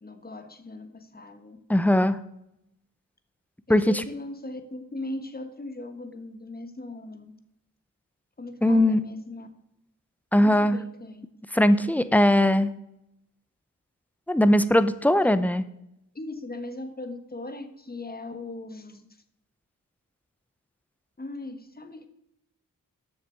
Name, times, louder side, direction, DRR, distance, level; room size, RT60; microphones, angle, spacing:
voice 1, 0.0-1.6 3.7-7.4 8.4-9.5 10.3-11.3 15.2-15.3 16.1-19.1 21.2-22.1, left 2 dB, 25° left, 8 dB, 1.4 m, -39 dB
voice 2, 1.7-2.2 3.7-4.0 8.6-9.0 10.3-10.8 11.5-12.7 14.3-15.6, left 1 dB, 5° left, 12 dB, 0.7 m, -20 dB
7.5 x 6.6 x 6.8 m, 0.82 s
cardioid pair, 70°, 34 cm